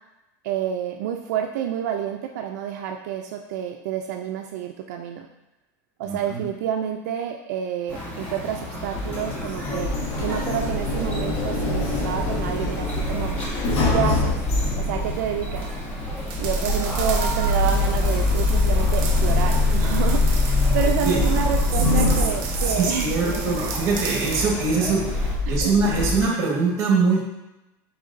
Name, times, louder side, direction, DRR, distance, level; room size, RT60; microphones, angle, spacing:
voice 1, 0.4-5.3 6.0-9.9 10.2-13.3 13.8-14.4 14.9-15.7 16.4-23.6 25.5-25.7, right 9 dB, 85° right, 3 dB, 0.3 m, -29 dB
voice 2, 6.0-6.4 21.0-21.2 22.8-27.2, right 4 dB, 35° right, -2 dB, 1.2 m, -23 dB
sound 1, 7.9-25.3, equal, 15° left, 1.0 m, -34 dB
Sliding door, 8.8-26.2, left 2 dB, 65° left, 1.1 m, -24 dB
sound 2, 16.3-24.5, right 5 dB, 60° right, 0.8 m, -35 dB
4.5 x 3.9 x 2.5 m, 0.97 s
supercardioid pair, 160°, 9 cm